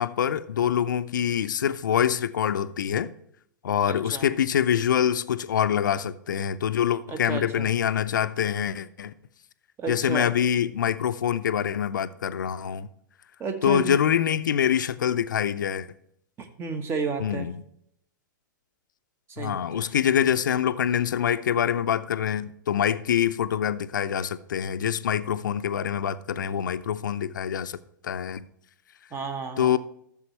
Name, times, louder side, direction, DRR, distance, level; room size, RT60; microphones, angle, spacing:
voice 1, 0.0-3.1 3.6-9.1 9.9-12.9 13.6-15.9 17.2-17.5 19.4-27.8 28.0-28.4 29.6-29.8, left 9 dB, 70° left, 0.6 m, -25 dB
voice 2, 3.9-4.3 7.1-7.7 9.8-10.3 13.4-14.0 16.4-17.5 19.3-19.9 29.1-29.8, right 5 dB, 25° right, 1.2 m, -32 dB
13.5 x 7.1 x 3.2 m
figure-of-eight pair, 110°, 11 cm